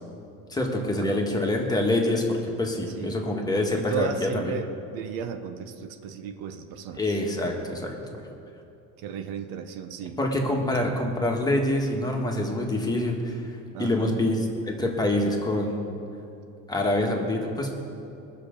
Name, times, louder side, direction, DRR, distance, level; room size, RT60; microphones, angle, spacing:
voice 1, 0.5-4.6 7.0-8.0 10.2-15.8 16.7-17.7, left 1 dB, 10° left, 0 dB, 1.4 m, -26 dB
voice 2, 3.7-7.0 9.0-10.2 13.7-14.2, right 7 dB, 75° right, 7 dB, 1.0 m, -34 dB
20.5 x 6.8 x 5.1 m, 2.7 s
cardioid pair, 135°, 35 cm